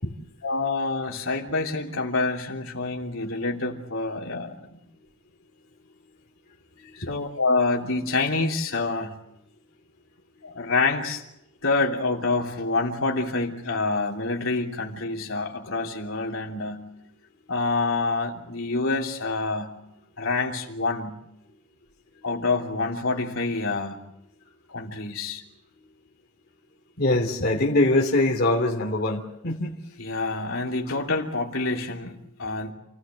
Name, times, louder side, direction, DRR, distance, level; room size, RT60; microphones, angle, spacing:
voice 1, 0.4-4.8 6.9-9.2 10.4-11.2 11.6-16.9 17.5-19.7 20.2-21.1 22.2-24.0 24.7-25.4 30.0-32.7, left 3 dB, 70° left, 0 dB, 3.2 m, -27 dB
voice 2, 27.0-29.7, left 2 dB, 50° left, 0 dB, 2.9 m, -23 dB
28.5 x 17.5 x 7.8 m, 0.84 s
head